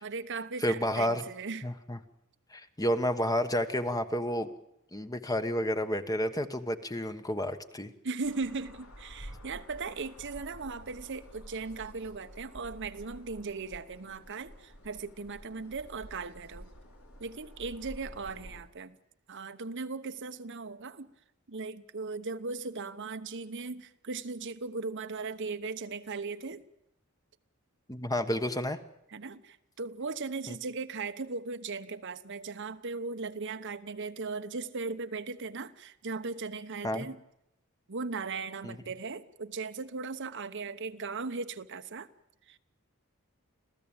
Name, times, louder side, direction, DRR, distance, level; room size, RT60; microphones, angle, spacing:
voice 1, 0.0-1.7 8.0-16.7 17.2-19.0 19.3-21.1 21.5-26.6 29.1-37.2 37.9-42.1 42.5-42.6, right 4 dB, 60° right, 1.0 m, -38 dB
voice 2, 0.6-1.2 1.6-2.0 2.5-4.5 4.9-7.9 27.9-28.8 30.5-30.6 36.8-37.1 38.6-38.7, equal, 15° left, 1.3 m, -30 dB
sound 1, 8.2-18.6, equal, 85° left, 4.0 m, -50 dB
27.0 x 15.5 x 8.9 m
head